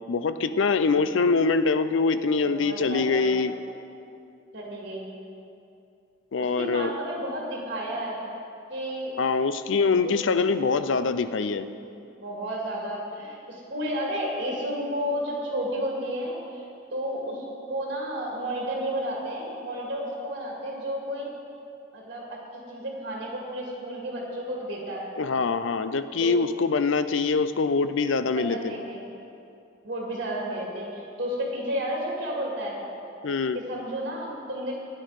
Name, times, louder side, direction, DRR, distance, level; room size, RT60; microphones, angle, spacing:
voice 1, 0.1-3.5 6.3-6.9 9.2-11.7 25.2-28.7 33.2-33.6, left 4 dB, 75° left, 12 dB, 0.5 m, -24 dB
voice 2, 2.4-3.3 4.5-5.1 6.4-8.2 8.7-9.1 10.0-10.1 10.5-10.7 12.2-16.7 16.9-21.3 21.9-25.1 26.2-26.4 28.3-29.0 29.8-32.8 33.5-34.7, equal, 55° right, -2 dB, 2.2 m, -32 dB
14.0 x 9.8 x 4.8 m, 2.6 s
head